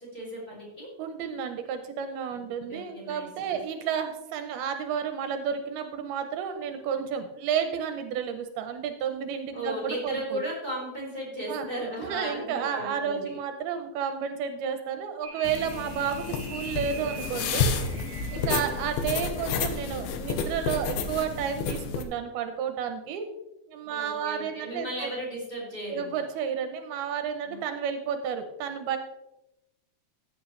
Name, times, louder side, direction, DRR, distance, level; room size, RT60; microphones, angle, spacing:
voice 1, 0.1-0.9 2.3-3.6 9.5-13.3 18.3-18.8 23.9-26.2 27.5-27.6, right 1 dB, 15° left, -5 dB, 4.6 m, -36 dB
voice 2, 1.0-10.4 11.5-11.7 12.0-17.7 18.3-23.3 23.7-25.1 25.9-29.0, right 7 dB, 80° right, 8 dB, 2.6 m, -31 dB
sound 1, 15.2-18.7, right 4 dB, 50° right, 2.2 m, -43 dB
sound 2, 15.4-22.0, left 5 dB, 75° left, 2.7 m, -30 dB
14.5 x 8.7 x 3.2 m, 0.92 s
omnidirectional pair, 4.6 m